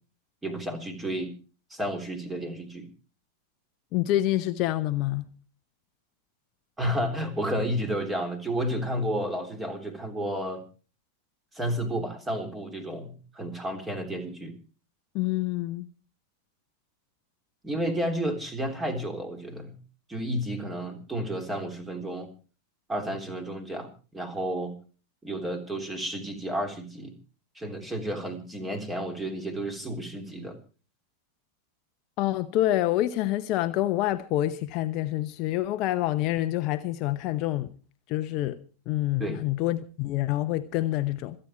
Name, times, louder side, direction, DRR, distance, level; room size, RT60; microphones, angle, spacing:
voice 1, 0.4-1.3 1.7-2.9 6.8-10.6 11.5-14.6 17.6-19.8 20.1-22.3 22.9-24.7 25.2-27.1 27.6-30.6 39.2-39.4, equal, 10° right, 3.5 m, -31 dB
voice 2, 3.9-5.3 15.1-15.9 32.2-37.7 38.1-38.6 38.9-41.4, left 15 dB, 40° left, 0.9 m, -27 dB
26.5 x 8.9 x 4.6 m
figure-of-eight pair, 90°, 0 cm